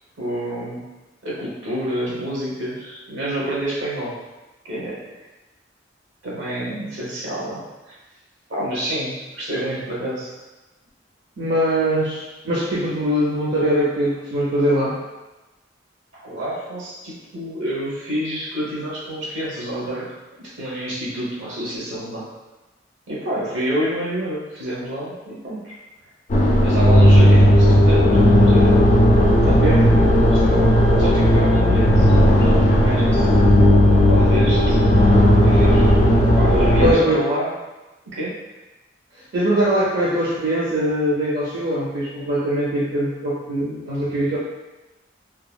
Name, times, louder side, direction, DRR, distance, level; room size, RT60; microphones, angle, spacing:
voice 1, 0.2-0.8 1.2-4.2 4.6-5.0 6.2-8.0 8.5-10.3 16.2-22.3 23.1-25.8 26.6-28.7 29.4-33.3 34.1-34.8 35.4-36.0 36.4-37.5 38.0-38.4, right 1 dB, 85° right, -6 dB, 1.0 m, -28 dB
voice 2, 11.4-15.0 27.2-27.3 29.6-29.8 36.8-37.2 39.3-44.4, right 1 dB, 60° right, -8 dB, 0.5 m, -21 dB
sound 1, 26.3-36.9, equal, 45° left, 0.4 m, -14 dB
2.8 x 2.4 x 2.2 m, 1.1 s
head